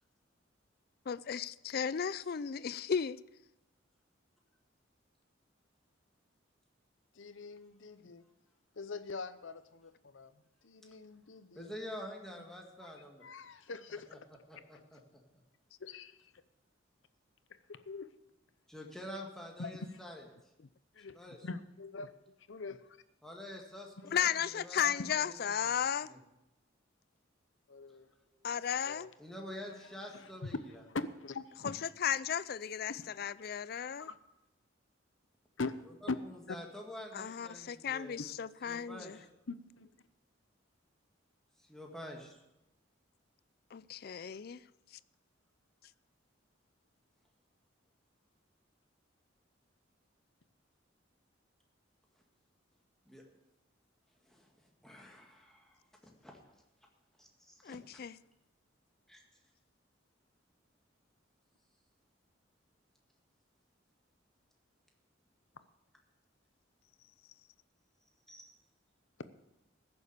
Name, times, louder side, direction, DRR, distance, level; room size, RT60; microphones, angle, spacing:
voice 1, 1.1-3.2 24.1-26.1 28.4-29.1 31.6-31.7 32.0-34.1 37.1-39.2 43.7-44.6 57.6-58.1, left 8 dB, 50° left, 0.4 m, -35 dB
voice 2, 7.1-8.2 8.7-10.3 10.6-11.8 12.8-12.9 13.2-14.2 14.5-14.8 15.8-16.3 17.5-18.1 19.6-20.0 20.9-23.0 24.0-24.1 24.8-24.9 27.7-28.1 28.8-29.1 29.7-30.6 30.9-31.7 33.0-33.1 34.0-34.2 35.6-35.7 36.1-36.2 36.5-36.6 38.2-38.3 39.5-39.9, left 3 dB, 75° left, 0.8 m, -43 dB
voice 3, 11.5-13.3 13.9-14.2 14.5-15.0 18.7-20.2 21.1-21.5 23.2-26.2 28.3-28.4 29.2-30.6 36.2-38.2 38.6-39.3 41.6-42.4 53.1-53.2 54.2-55.8 56.2-56.4 57.2-57.8 59.1-59.2 68.3-68.5, equal, ahead, 1.9 m, -48 dB
15.5 x 7.0 x 6.8 m
head